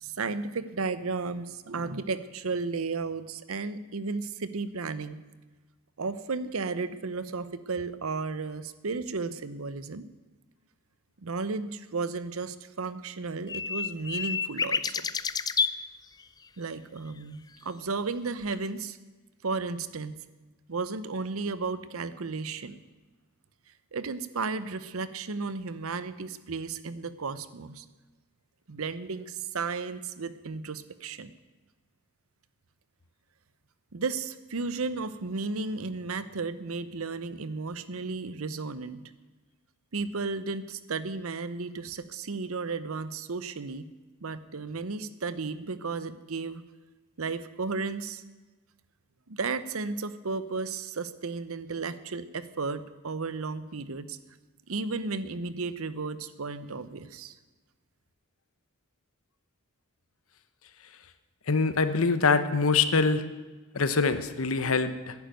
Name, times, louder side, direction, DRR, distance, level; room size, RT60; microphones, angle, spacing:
voice 1, 0.0-5.2 6.0-10.1 11.2-15.1 16.6-19.0 19.4-20.2 20.7-22.8 23.9-27.8 28.7-31.3 33.9-39.0 39.9-43.9 44.2-46.6 47.2-48.2 49.3-54.2 54.7-57.3, right 4 dB, 70° right, 14 dB, 0.8 m, -34 dB
sound 1, 13.5-15.7 18.5-18.6, left 5 dB, 20° left, 0.4 m, -29 dB
voice 2, 61.5-63.2 63.7-65.1, left 4 dB, 70° left, 11 dB, 1.0 m, -24 dB
11.0 x 10.5 x 9.1 m, 1.2 s
head